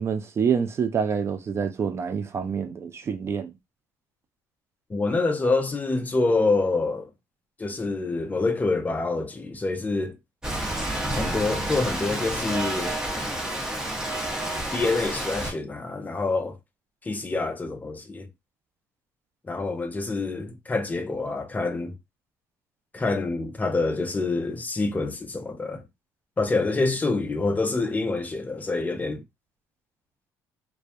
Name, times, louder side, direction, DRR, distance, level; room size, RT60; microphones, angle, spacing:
voice 1, 0.0-3.5, right 6 dB, 35° right, 0.4 m, -27 dB
voice 2, 4.9-7.1 7.6-10.2 11.2-13.0 14.7-16.6 17.0-18.3 19.4-22.0 22.9-25.8 26.4-29.2, left 3 dB, 20° left, 0.5 m, -26 dB
Rain, 10.4-15.5, right 1 dB, 10° right, 0.8 m, -29 dB
2.3 x 2.1 x 2.6 m
supercardioid pair, 85°, 8 cm